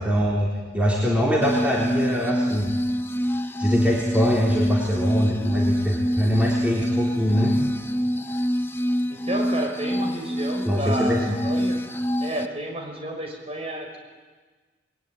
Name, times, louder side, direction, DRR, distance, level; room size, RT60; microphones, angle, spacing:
voice 1, 0.0-2.7 3.6-7.6 10.7-11.3, equal, 5° right, -4 dB, 3.7 m, -23 dB
sound 1, 1.4-12.5, equal, 10° left, 0.8 m, -26 dB
voice 2, 9.1-11.8 12.2-14.0, right 1 dB, 30° right, 2 dB, 5.9 m, -31 dB
27.5 x 21.5 x 9.7 m, 1.4 s
head